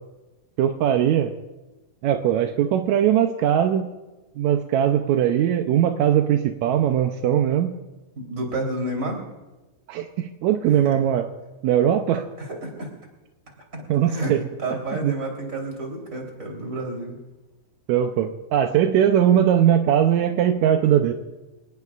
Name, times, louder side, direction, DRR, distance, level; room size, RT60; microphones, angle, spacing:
voice 1, 0.6-1.3 2.0-3.9 4.4-7.7 9.9-11.2 11.6-12.2 13.9-14.4 15.0-15.1 17.9-21.1, right 10 dB, 80° right, 6 dB, 1.6 m, -20 dB
voice 2, 8.2-9.2 10.7-11.0 12.4-12.9 13.6-17.2, right 1 dB, 20° right, 1 dB, 3.7 m, -30 dB
27.5 x 19.0 x 2.5 m, 1.1 s
omnidirectional pair, 4.1 m